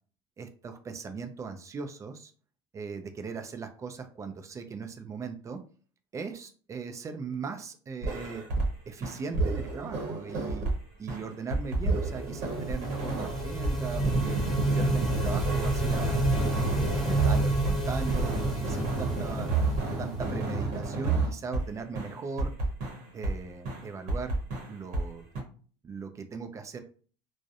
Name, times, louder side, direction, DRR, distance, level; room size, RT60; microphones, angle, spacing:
voice 1, 0.4-2.3 2.7-5.6 6.1-8.4 8.9-10.6 11.0-14.4 14.7-16.2 16.6-19.5 20.0-22.5 23.1-24.3 24.7-25.3 25.8-26.8, right 5 dB, 25° right, 6 dB, 0.4 m, -39 dB
sound 1, 8.0-8.7 9.0-10.8 11.1-17.8 18.1-21.7 22.0-23.4 23.7-25.1 25.4-25.5, right 3 dB, 65° right, 0.9 m, -30 dB
sound 2, 11.9-20.7, right 1 dB, ahead, 0.9 m, -29 dB
2.5 x 2.1 x 2.4 m, 0.41 s
supercardioid pair, 105°, 13 cm